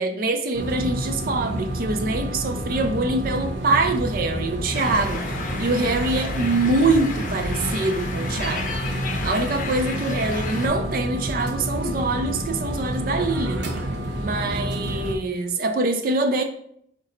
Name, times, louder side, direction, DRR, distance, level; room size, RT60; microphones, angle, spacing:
voice 1, 0.0-8.7 9.2-13.7 14.1-16.4, right 2 dB, 50° right, 0.4 m, -24 dB
sound 1, 0.5-15.1, right 1 dB, 80° right, 0.8 m, -29 dB
sound 2, 4.7-10.7, left 3 dB, 45° left, 0.6 m, -33 dB
4.5 x 3.9 x 2.8 m
head